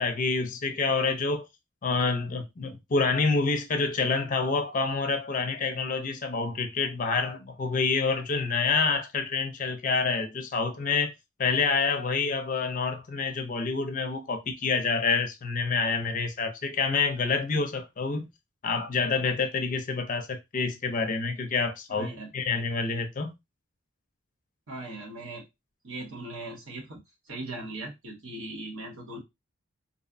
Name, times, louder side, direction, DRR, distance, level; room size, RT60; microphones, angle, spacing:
voice 1, 0.0-1.5 1.8-11.1 11.4-18.3 18.6-22.1 22.3-23.3, left 4 dB, 40° left, 0.4 m, -27 dB
voice 2, 21.9-22.3 24.7-25.4 25.8-27.0 27.3-29.2, right 2 dB, 70° right, 1.0 m, -39 dB
2.6 x 2.0 x 2.5 m
head